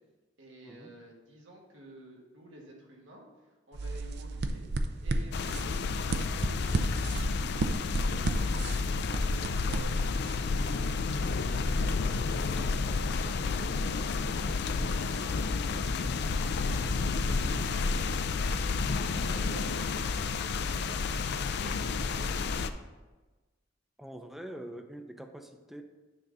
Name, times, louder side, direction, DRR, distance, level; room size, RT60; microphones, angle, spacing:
voice 1, 0.4-3.3 3.7-4.6 5.0-8.8 9.3-11.1 11.4-12.6 13.2-15.9 16.3-18.0 18.4-22.3, equal, 90° right, -2 dB, 1.9 m, -52 dB
sound 1, 3.7-10.4, right 2 dB, 60° right, 0.6 m, -33 dB
sound 2, 5.3-22.7, left 4 dB, 60° left, 0.4 m, -30 dB
voice 2, 24.0-25.8, right 1 dB, ahead, 5 dB, 0.6 m, -44 dB
9.5 x 3.9 x 5.5 m, 1.2 s
head